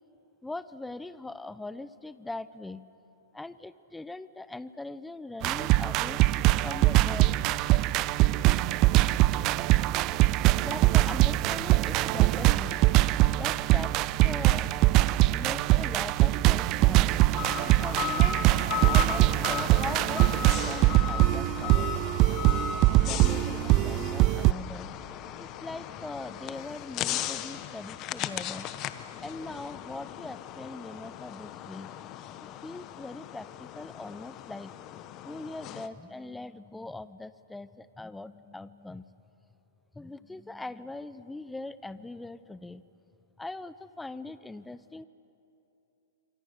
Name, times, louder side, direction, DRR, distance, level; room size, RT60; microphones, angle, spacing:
voice 1, 0.4-2.8 3.3-6.2 6.5-7.4 10.5-12.8 13.4-13.9 14.2-14.7 15.3-17.1 17.6-18.4 18.8-21.9 23.0-24.9 25.4-28.7 29.2-31.9 32.6-34.7 35.2-39.1 39.9-42.8 43.4-45.1, left 2 dB, 5° left, 15 dB, 0.6 m, -41 dB
sound 1, 5.4-24.5, right 17 dB, 40° right, 0.5 m, -23 dB
sound 2, 17.4-35.9, left 9 dB, 35° left, 1.1 m, -37 dB
26.5 x 24.0 x 6.7 m, 2.9 s
hypercardioid pair, 125°, 0 cm